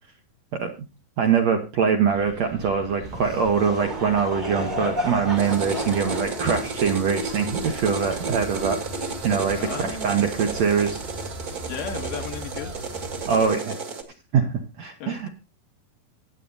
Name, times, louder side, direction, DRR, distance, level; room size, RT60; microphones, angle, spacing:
voice 1, 1.2-8.8 9.2-11.0 13.3-13.8 14.3-15.3, right 6 dB, 65° right, 4 dB, 1.7 m, -23 dB
sound 1, 2.1-13.5, right 2 dB, 90° right, 6.9 m, -40 dB
Laughter / Crowd, 3.0-8.8, equal, 20° right, 1.1 m, -33 dB
sound 2, 5.4-14.0, right 3 dB, 40° right, 1.4 m, -32 dB
voice 2, 9.6-10.1 11.7-12.7 15.0-15.3, left 7 dB, 75° left, 5 dB, 3.5 m, -34 dB
25.0 x 8.4 x 2.6 m, 0.31 s
omnidirectional pair, 4.5 m